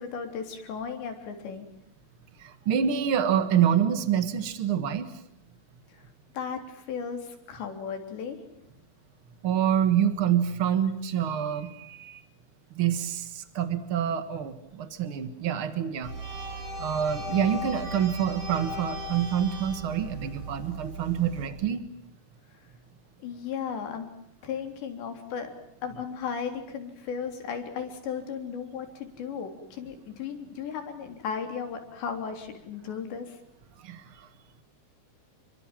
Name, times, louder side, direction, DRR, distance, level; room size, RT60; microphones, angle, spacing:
voice 1, 0.0-1.7 5.9-6.0 6.3-8.4 23.2-24.1 24.4-25.5 25.8-33.4, left 6 dB, 75° left, 6 dB, 5.8 m, -35 dB
voice 2, 2.4-5.1 9.4-12.2 12.7-16.1 16.8-21.8 33.8-34.3, right 9 dB, 75° right, 11 dB, 1.2 m, -27 dB
sound 1, 16.0-21.5, equal, 40° right, 8.7 m, -37 dB
29.0 x 24.0 x 7.5 m, 0.74 s
omnidirectional pair, 5.1 m